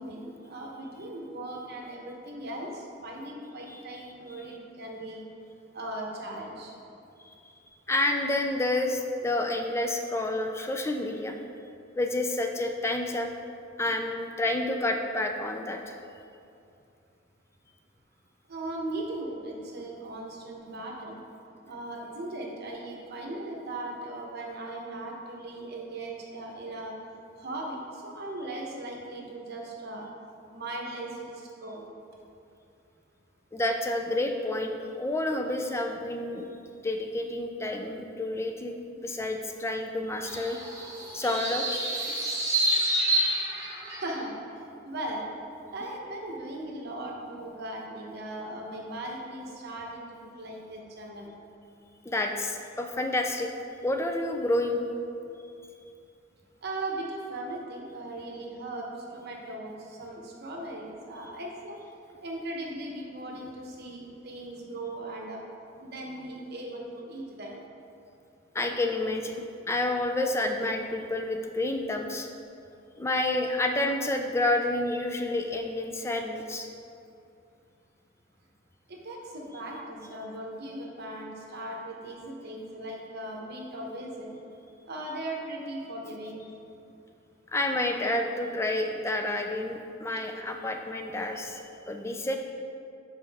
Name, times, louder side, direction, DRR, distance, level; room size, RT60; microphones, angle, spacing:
voice 1, 0.0-5.2 5.7-6.7 18.5-21.2 21.6-26.9 27.4-30.0 30.5-31.9 44.0-44.3 44.8-45.3 45.7-51.3 56.6-58.9 59.1-61.8 62.2-65.4 65.8-67.6 78.9-84.3 84.9-86.5, right 1 dB, 55° right, -1 dB, 0.9 m, -38 dB
voice 2, 7.9-11.4 11.9-13.3 13.8-16.0 33.5-40.6 41.1-41.7 52.1-53.5 53.8-54.8 68.5-72.3 73.0-76.7 87.5-92.4, left 2 dB, 15° left, 4 dB, 0.4 m, -29 dB
sound 1, 40.2-44.2, right 1 dB, 15° right, 1.1 m, -28 dB
7.4 x 4.2 x 3.5 m, 2.6 s
head